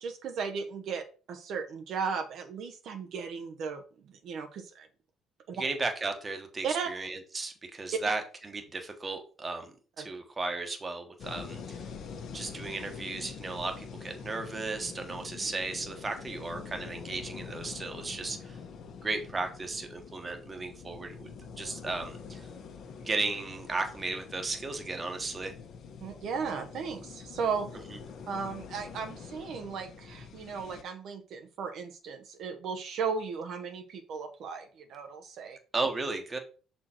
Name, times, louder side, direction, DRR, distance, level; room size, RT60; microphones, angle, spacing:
voice 1, 0.0-4.9 5.5-5.6 6.6-6.9 10.0-10.1 26.0-27.7 28.3-35.6, right 5 dB, 60° right, 6 dB, 0.8 m, -36 dB
voice 2, 5.5-11.9 12.3-18.6 19.0-21.3 21.6-22.5 23.0-25.5 35.7-36.4, right 3 dB, 20° right, 5 dB, 1.2 m, -35 dB
sound 1, 11.2-30.8, left 5 dB, 60° left, 1.2 m, -45 dB
6.2 x 4.4 x 4.3 m, 0.37 s
cardioid pair, 140°, 0 cm